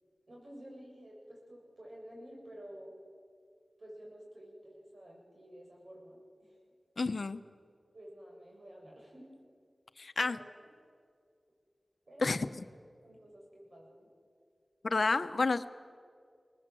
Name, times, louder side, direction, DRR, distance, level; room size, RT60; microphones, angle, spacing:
voice 1, 0.3-2.9 3.8-6.6 7.9-9.3 10.2-10.5 12.1-12.4 13.0-14.1, equal, 65° right, -2 dB, 7.7 m, -51 dB
voice 2, 7.0-7.4 10.0-10.4 12.2-12.5 14.8-15.7, left 3 dB, 70° left, 11 dB, 0.8 m, -30 dB
23.0 x 20.0 x 7.7 m, 2.2 s
wide cardioid pair, 60°, 0 cm